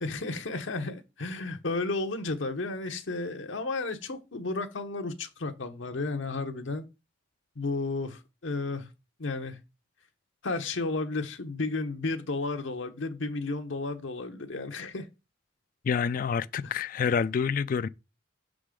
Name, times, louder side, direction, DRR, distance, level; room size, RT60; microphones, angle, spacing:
voice 1, 0.0-6.9 7.6-8.9 9.2-9.6 10.4-15.1, left 3 dB, 75° left, 0.9 m, -33 dB
voice 2, 15.8-17.9, left 6 dB, 45° left, 0.3 m, -27 dB
5.8 x 5.0 x 3.7 m
head